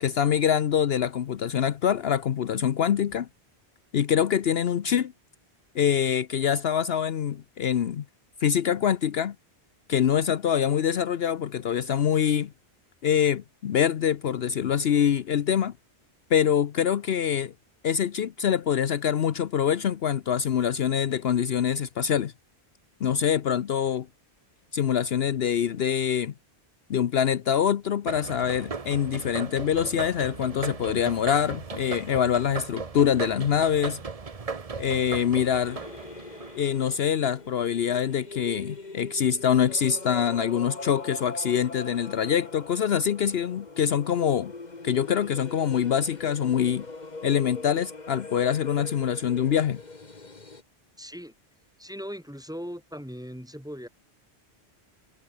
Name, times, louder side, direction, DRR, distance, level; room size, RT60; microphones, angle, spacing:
voice 1, 0.0-3.3 3.9-5.1 5.7-8.0 8.4-9.4 9.9-12.5 13.0-15.7 16.3-17.5 17.8-22.3 23.0-24.1 24.7-26.3 26.9-34.0 34.8-35.8 36.6-44.5 44.8-46.9 47.2-49.8, left 8 dB, 65° left, 1.0 m, -25 dB
sound 1, 28.1-37.2, right 4 dB, 35° right, 1.1 m, -37 dB
sound 2, 35.6-50.6, left 3 dB, 40° left, 2.1 m, -42 dB
voice 2, 51.0-51.3 51.8-53.9, equal, 5° right, 4.0 m, -39 dB
omnidirectional pair, 1.1 m